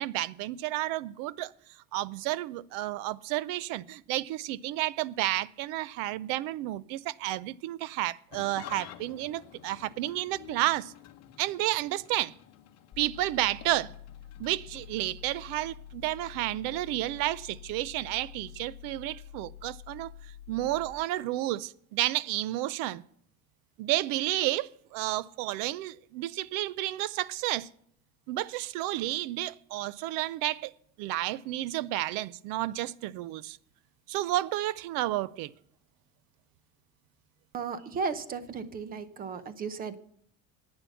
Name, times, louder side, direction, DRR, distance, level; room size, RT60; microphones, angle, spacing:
voice 1, 0.0-1.5 1.9-10.9 11.4-12.3 13.0-13.9 14.4-20.1 20.5-23.0 23.8-27.7 28.3-30.7 31.0-33.6 34.1-35.5, right 15 dB, 65° right, 0.6 m, -31 dB
Engine starting / Idling, 8.3-18.9, left 12 dB, 45° left, 1.0 m, -52 dB
sound 1, 12.9-20.9, left 10 dB, 30° left, 1.3 m, -48 dB
voice 2, 37.5-40.0, right 5 dB, 25° right, 0.7 m, -35 dB
11.0 x 8.8 x 7.0 m
cardioid pair, 170°, 37 cm